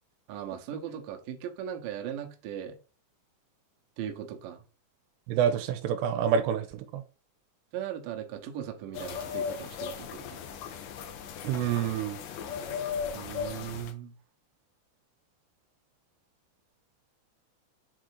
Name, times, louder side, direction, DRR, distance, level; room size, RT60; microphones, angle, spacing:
voice 1, 0.3-2.8 4.0-4.6 7.7-10.4 13.1-14.1, right 9 dB, 70° right, 2.2 m, -38 dB
voice 2, 5.3-7.0 11.4-12.2, right 8 dB, 85° right, 2.8 m, -27 dB
sound 1, 8.9-13.9, left 7 dB, 85° left, 1.8 m, -37 dB
6.7 x 3.9 x 4.7 m
omnidirectional pair, 4.9 m